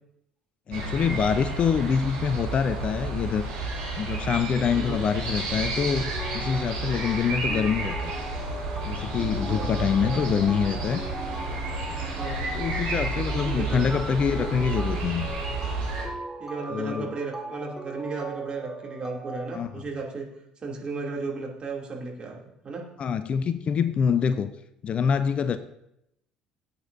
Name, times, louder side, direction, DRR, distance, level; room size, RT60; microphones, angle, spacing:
voice 1, 0.7-3.5 4.0-6.0 6.3-8.1 8.9-11.0 12.5-15.3 16.7-17.1 19.5-19.7 23.0-24.5 24.8-25.6, left 7 dB, 40° left, 0.6 m, -25 dB
sound 1, 0.7-16.0, right 3 dB, 75° right, 4.9 m, -31 dB
voice 2, 4.7-5.0 9.3-10.2 12.2-12.5 13.4-13.9 16.4-20.3 20.6-22.8, right 4 dB, 35° right, 2.7 m, -35 dB
sound 2, 5.8-19.5, right 1 dB, 10° right, 1.3 m, -39 dB
17.5 x 8.6 x 2.7 m
hypercardioid pair, 60°, 3 cm